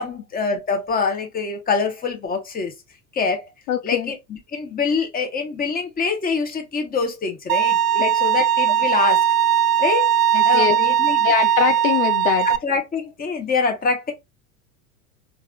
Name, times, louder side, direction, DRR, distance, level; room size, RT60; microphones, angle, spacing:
voice 1, 0.0-2.7 3.1-3.4 3.8-9.3 9.8-10.1 10.4-11.3 12.4-14.1, left 4 dB, 20° left, 1.1 m, -25 dB
voice 2, 3.7-4.1 10.3-10.8 11.2-12.5, left 9 dB, 65° left, 0.6 m, -22 dB
Bowed string instrument, 7.5-12.6, right 10 dB, 60° right, 0.6 m, -19 dB
4.6 x 2.8 x 2.3 m
hypercardioid pair, 90°, 48 cm